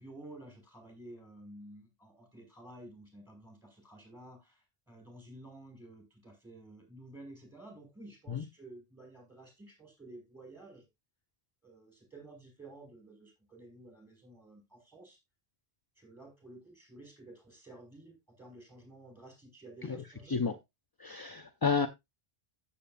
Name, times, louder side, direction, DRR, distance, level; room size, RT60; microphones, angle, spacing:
voice 1, 0.0-10.9 11.6-15.2 16.0-20.4, right 1 dB, ahead, 5.4 m, -52 dB
voice 2, 21.0-21.9, left 5 dB, 30° left, 0.5 m, -31 dB
14.0 x 7.1 x 2.5 m
omnidirectional pair, 1.1 m